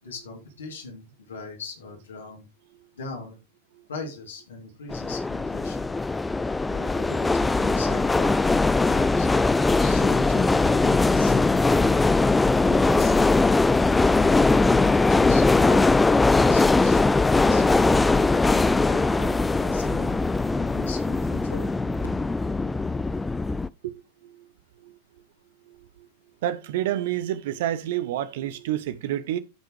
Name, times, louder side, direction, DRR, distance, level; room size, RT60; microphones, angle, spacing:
voice 1, 0.0-2.4 3.0-3.4 3.9-5.9 6.6-8.4 8.9-9.3 9.8-12.1 12.7-13.3 13.7-15.9 16.3-17.0 17.3-18.0 18.3-20.2 20.5-21.7, left 3 dB, 70° left, 2.9 m, -40 dB
sound 1, 4.9-23.7, left 3 dB, 10° left, 0.4 m, -21 dB
voice 2, 23.8-24.5 24.8-25.0 25.7-26.1 26.4-29.4, right 12 dB, 55° right, 0.8 m, -29 dB
14.5 x 5.7 x 3.2 m
figure-of-eight pair, 90°, 0 cm